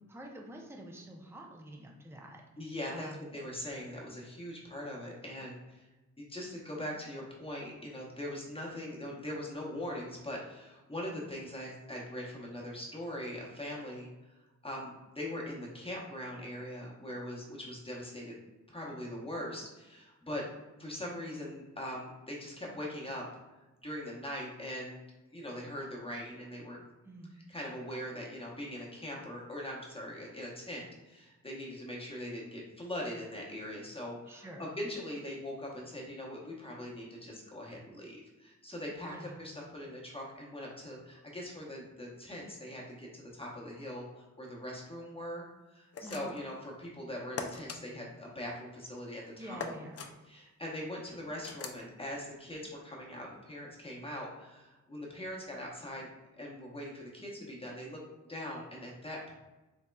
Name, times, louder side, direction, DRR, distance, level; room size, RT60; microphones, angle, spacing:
voice 1, 0.1-2.4 2.9-3.4 27.0-27.3 34.3-34.7 39.0-39.4 46.0-46.3 49.4-50.0, right 1 dB, 10° right, 0 dB, 0.5 m, -47 dB
voice 2, 2.6-5.9 6.2-14.1 14.6-18.4 18.7-20.5 20.8-23.3 23.8-25.0 25.3-26.8 27.5-45.5 45.7-49.6 50.3-56.1 56.4-58.0 58.3-59.3, left 1 dB, 20° left, -3 dB, 0.9 m, -41 dB
sound 1, 45.9-46.5 47.4-47.8 49.6-50.1 51.4-51.8, left 5 dB, 50° left, 0.4 m, -40 dB
4.1 x 3.6 x 2.2 m, 1.1 s
wide cardioid pair, 110°, 31 cm